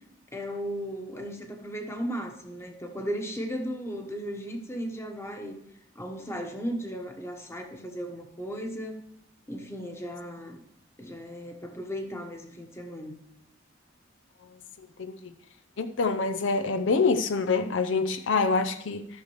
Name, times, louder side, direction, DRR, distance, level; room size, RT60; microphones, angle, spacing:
voice 1, 0.3-5.6 5.9-9.0 9.5-10.6 11.0-13.2, equal, 15° left, 4 dB, 1.1 m, -36 dB
voice 2, 15.0-15.3 15.8-19.1, left 4 dB, 70° left, 9 dB, 0.6 m, -26 dB
13.5 x 6.6 x 3.1 m, 0.79 s
head